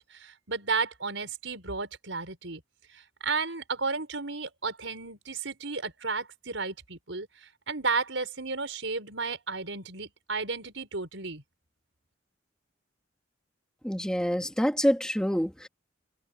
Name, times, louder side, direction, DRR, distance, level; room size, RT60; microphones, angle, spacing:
voice 1, 0.0-2.6 2.9-11.4, right 4 dB, 80° right, 5.2 m, -33 dB
voice 2, 13.8-15.7, equal, 5° left, 1.6 m, -26 dB
head